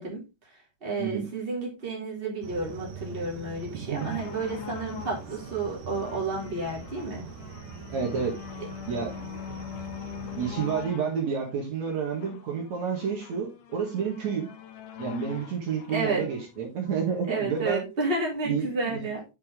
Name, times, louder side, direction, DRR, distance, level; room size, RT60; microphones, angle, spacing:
voice 1, 0.0-7.3 15.9-16.2 17.3-19.2, right 3 dB, 15° right, -3 dB, 3.3 m, -31 dB
sound 1, 2.4-10.9, right 6 dB, 90° right, 2.7 m, -42 dB
voice 2, 3.8-4.2 7.9-8.4 8.8-9.1 10.2-14.5 15.0-17.8 18.4-19.1, right 6 dB, 60° right, -1 dB, 3.0 m, -30 dB
sound 2, 4.0-17.6 18.3-18.4, left 10 dB, 60° left, 2.1 m, -42 dB
8.8 x 5.5 x 3.7 m, 0.26 s
omnidirectional pair, 3.6 m